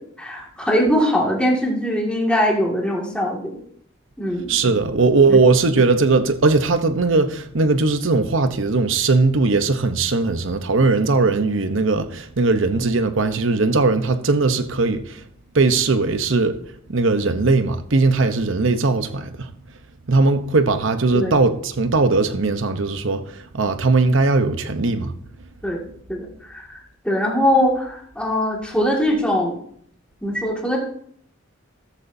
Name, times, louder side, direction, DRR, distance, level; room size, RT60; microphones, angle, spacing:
voice 1, 0.2-3.6 4.2-4.5 5.3-5.4 21.1-21.4 25.6-25.8 26.1-26.8 27.0-29.6 30.2-30.8, equal, 5° left, 2.1 m, -21 dB
voice 2, 4.5-15.2 15.5-16.6 16.9-19.5 20.1-23.2 23.5-25.1, right 3 dB, 65° right, 0.9 m, -19 dB
14.0 x 12.5 x 2.7 m
head